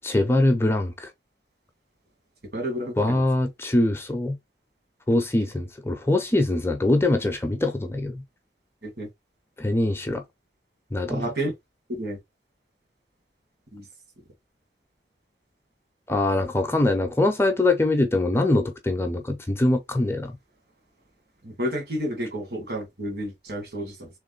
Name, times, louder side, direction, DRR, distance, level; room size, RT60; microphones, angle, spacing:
voice 1, 0.0-1.1 3.0-4.4 5.1-8.2 9.6-10.2 10.9-11.3 16.1-20.4, left 2 dB, 15° left, 0.6 m, -23 dB
voice 2, 2.5-3.2 8.8-9.1 11.1-11.5 11.9-12.2 13.7-13.8 21.4-24.1, equal, 60° right, 1.7 m, -30 dB
3.5 x 3.2 x 3.9 m
head